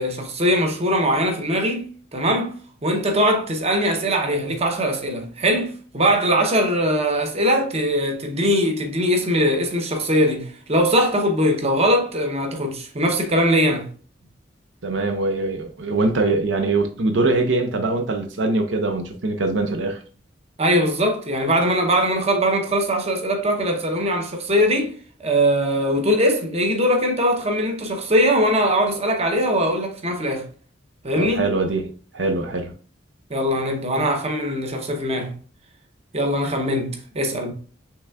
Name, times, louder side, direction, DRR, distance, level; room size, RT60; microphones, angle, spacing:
voice 1, 0.0-2.5 2.8-13.9 20.6-24.9 25.2-30.4 31.0-31.5 33.3-35.3 36.1-37.5, equal, 35° right, 0.8 m, -21 dB
voice 2, 14.8-20.0 31.2-32.7, right 3 dB, 75° right, 0.6 m, -23 dB
5.9 x 3.4 x 2.3 m
head